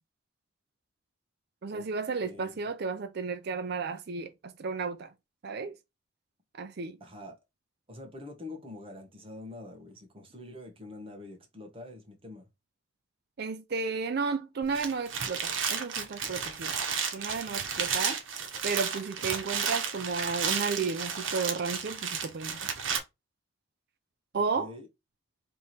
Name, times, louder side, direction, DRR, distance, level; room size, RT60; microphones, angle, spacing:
voice 1, 1.6-5.1 5.4-5.7 6.6-7.0 13.4-16.8 17.1-18.2 18.6-22.6 24.3-24.7, right 4 dB, 55° right, 0.5 m, -33 dB
voice 2, 2.3-2.7 7.0-7.4 7.9-12.5 24.5-24.9, left 2 dB, 30° right, 1.3 m, -45 dB
sound 1, 14.6-23.0, right 6 dB, 85° right, 1.0 m, -32 dB
3.5 x 3.1 x 4.3 m
head